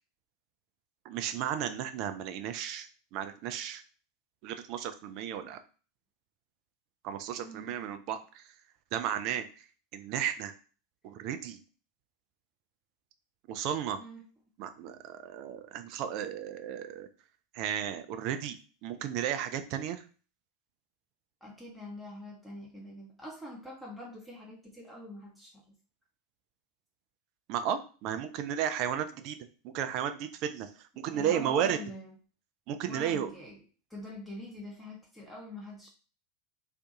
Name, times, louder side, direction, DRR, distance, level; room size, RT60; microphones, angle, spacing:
voice 1, 1.0-3.8 4.4-5.6 7.0-8.5 8.9-9.6 9.9-10.5 11.0-11.6 13.5-14.0 14.6-17.1 17.5-18.6 18.8-20.0 27.5-29.4 29.6-30.7 31.0-31.8 32.7-33.3, right 9 dB, 45° right, 9 dB, 0.3 m, -34 dB
voice 2, 7.4-7.7 14.0-14.2 21.4-25.7 31.1-32.1 32.8-33.6 33.9-35.9, left 1 dB, ahead, -4 dB, 0.7 m, -44 dB
2.5 x 2.2 x 2.6 m, 0.38 s
figure-of-eight pair, 85°, 0 cm